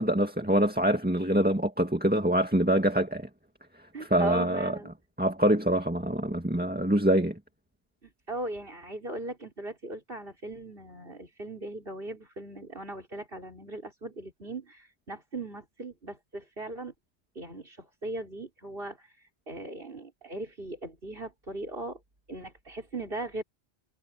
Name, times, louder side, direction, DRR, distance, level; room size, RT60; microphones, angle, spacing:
voice 1, 0.0-3.3 4.0-4.7 5.2-7.4, right 1 dB, 10° right, 1.9 m, -25 dB
voice 2, 3.9-4.9 8.0-16.9 17.3-22.0 22.3-23.4, right 2 dB, 50° right, 5.6 m, -39 dB
omnidirectional pair, 1.2 m